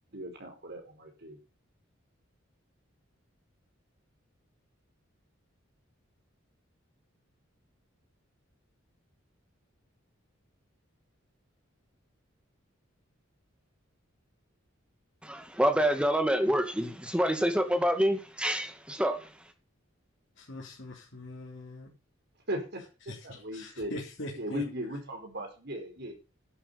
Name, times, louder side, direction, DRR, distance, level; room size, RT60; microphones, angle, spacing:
voice 1, 0.1-1.4 22.5-24.0 24.4-26.1, equal, 55° right, 4.9 m, -38 dB
voice 2, 15.2-19.3, equal, 5° right, 2.1 m, -27 dB
voice 3, 20.4-21.9 23.1-24.6, left 2 dB, 60° left, 3.9 m, -42 dB
11.5 x 9.0 x 6.9 m
head